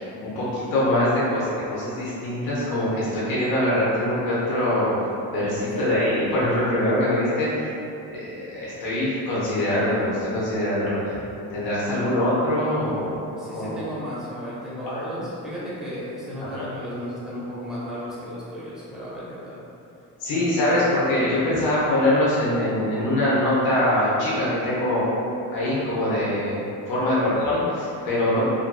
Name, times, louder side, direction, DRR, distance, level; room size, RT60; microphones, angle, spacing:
voice 1, 0.0-4.9 5.3-7.7 8.1-11.2 11.5-13.8 14.9-15.1 16.4-16.6 20.2-25.0 25.5-26.6 26.8-28.4, left 1 dB, 90° left, -9 dB, 0.9 m, -23 dB
voice 2, 13.4-19.6 20.3-20.8 27.2-27.3, equal, ahead, -10 dB, 1.1 m, -34 dB
3.3 x 2.5 x 2.2 m, 2.7 s
cardioid pair, 85°, 36 cm